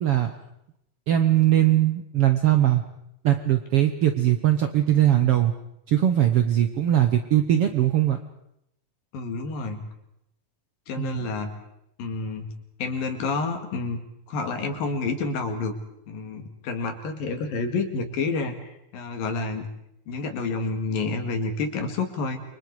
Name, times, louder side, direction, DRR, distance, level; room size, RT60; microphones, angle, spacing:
voice 1, 0.0-0.3 1.1-2.8 3.2-5.5 5.9-8.2 11.0-11.3, right 12 dB, 85° right, 7 dB, 1.2 m, -20 dB
voice 2, 9.1-9.8 10.9-11.5 12.0-12.5 12.8-14.0 14.3-15.8 16.1-19.7 20.1-22.4, left 3 dB, 75° left, 5 dB, 3.8 m, -29 dB
29.5 x 24.0 x 4.7 m, 0.79 s
omnidirectional pair, 4.1 m